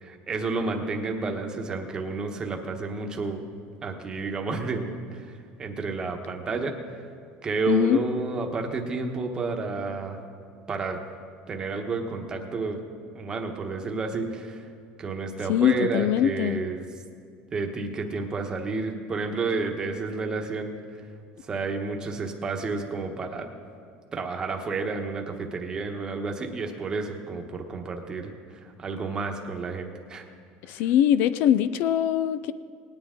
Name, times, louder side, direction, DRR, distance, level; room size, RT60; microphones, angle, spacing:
voice 1, 0.0-3.4 3.8-5.3 5.6-6.8 7.4-10.2 10.7-11.0 11.5-12.8 13.1-14.7 15.0-16.8 17.5-20.7 21.5-23.5 24.1-30.2 30.7-30.8, right 3 dB, 20° right, 3 dB, 1.1 m, -30 dB
voice 2, 7.7-8.0 15.5-16.6 30.6-32.5, left 10 dB, 60° left, 15 dB, 0.4 m, -22 dB
19.0 x 9.7 x 3.8 m, 2.3 s
cardioid pair, 160°, 4 cm